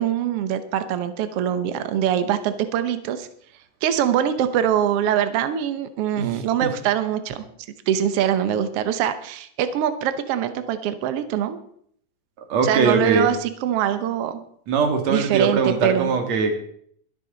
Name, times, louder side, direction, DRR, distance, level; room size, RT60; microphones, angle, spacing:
voice 1, 0.0-3.3 3.8-7.4 7.9-11.6 12.6-14.4 15.1-16.1, right 9 dB, 85° right, 10 dB, 1.3 m, -23 dB
voice 2, 6.2-6.7 12.5-13.3 14.7-16.5, right 4 dB, 55° right, 5 dB, 2.7 m, -21 dB
22.5 x 9.1 x 3.9 m, 0.64 s
omnidirectional pair, 4.1 m